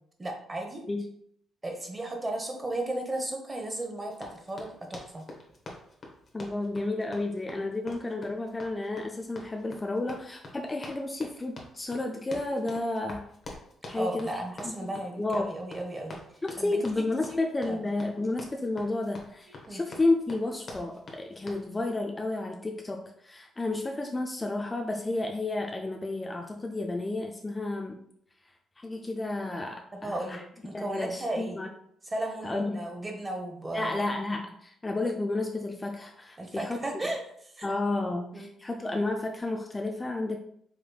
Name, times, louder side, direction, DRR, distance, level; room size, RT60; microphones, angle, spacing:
voice 1, 0.2-0.8 1.6-5.2 14.0-16.2 16.6-17.4 17.7-17.9 19.7-19.8 29.9-31.6 32.1-34.0 36.4-37.7 38.3-38.5, right 1 dB, 20° right, 2 dB, 0.9 m, -35 dB
Run, 4.1-21.7, left 2 dB, 45° left, 0.9 m, -46 dB
voice 2, 6.3-13.2 13.9-15.6 16.4-28.0 28.8-30.4 30.7-31.7 32.4-32.8 33.7-36.8 37.6-40.4, left 2 dB, 20° left, 2 dB, 0.4 m, -31 dB
4.9 x 3.1 x 2.3 m, 0.69 s
cardioid pair, 90°, 0 cm